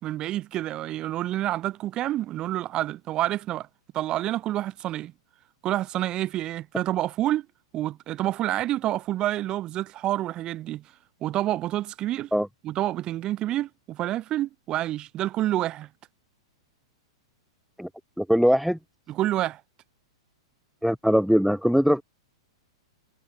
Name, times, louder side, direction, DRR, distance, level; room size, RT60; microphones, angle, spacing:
voice 1, 0.0-3.7 3.9-5.1 5.6-7.5 7.7-10.8 11.2-12.3 12.6-15.9 19.1-19.6, right 14 dB, 35° right, 3.4 m, -28 dB
voice 2, 18.2-18.8 20.8-22.0, equal, ahead, 5.1 m, -21 dB
hypercardioid pair, 105°, 3 cm